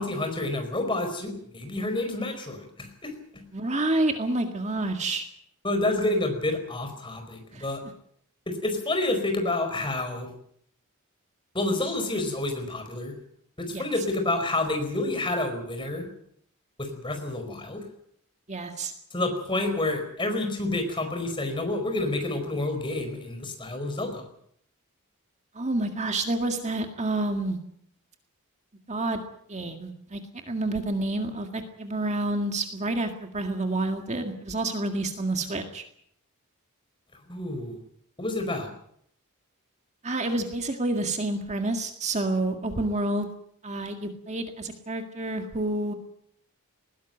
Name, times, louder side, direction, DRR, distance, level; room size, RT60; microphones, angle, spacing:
voice 1, 0.0-3.4 5.6-7.8 8.5-10.3 11.5-13.2 13.6-16.1 16.8-17.8 19.1-24.3 37.3-37.8 38.2-38.7, left 2 dB, 20° left, 6 dB, 4.7 m, -29 dB
voice 2, 3.5-5.3 7.5-7.7 13.7-13.8 18.5-18.9 25.5-27.6 28.9-29.2 29.5-30.2 30.5-35.8 40.0-43.3 43.6-45.9, right 2 dB, 30° right, 5 dB, 1.9 m, -28 dB
20.0 x 17.0 x 9.0 m, 0.68 s
head